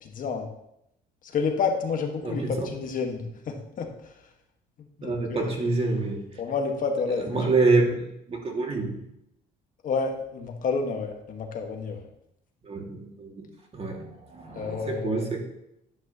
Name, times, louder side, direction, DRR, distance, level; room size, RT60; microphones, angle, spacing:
voice 1, 0.0-0.5 1.2-4.1 5.0-5.5 6.4-7.2 9.8-12.1 14.5-15.3, left 5 dB, 55° left, 3 dB, 1.6 m, -29 dB
voice 2, 2.2-2.5 5.0-6.4 7.2-9.0 12.6-13.5 13.7-15.4, right 3 dB, 35° right, 1 dB, 2.2 m, -27 dB
11.0 x 9.6 x 3.0 m, 0.80 s
cardioid pair, 110°, 17 cm